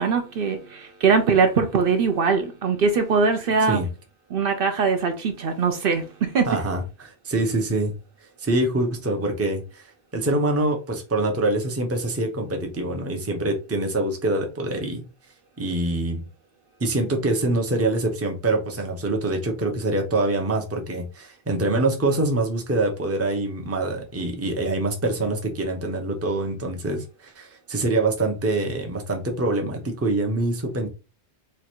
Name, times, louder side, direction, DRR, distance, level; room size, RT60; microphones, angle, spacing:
voice 1, 0.0-3.8 4.3-6.5, right 5 dB, 60° right, 0.8 m, -21 dB
voice 2, 6.4-7.9 8.4-15.0 15.6-16.2 16.8-30.9, right 2 dB, 15° right, 0.6 m, -25 dB
3.1 x 2.5 x 4.3 m
omnidirectional pair, 1.1 m